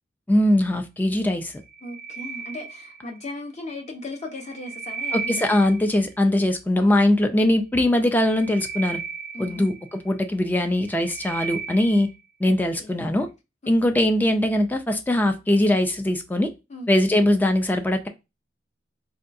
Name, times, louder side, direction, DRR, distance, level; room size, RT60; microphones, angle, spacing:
voice 1, 0.3-1.6 5.1-9.0 9.4-12.1 12.4-13.3 13.7-16.5 16.9-18.1, left 1 dB, 10° left, 0.3 m, -21 dB
sound 1, 1.6-3.3 4.2-6.1 8.0-10.1 10.6-12.2, right 6 dB, 55° right, 0.5 m, -35 dB
voice 2, 1.8-5.5 9.3-9.7 12.8-12.9 13.6-13.9 16.7-16.9, left 2 dB, 35° left, 0.8 m, -36 dB
3.6 x 2.3 x 2.5 m
head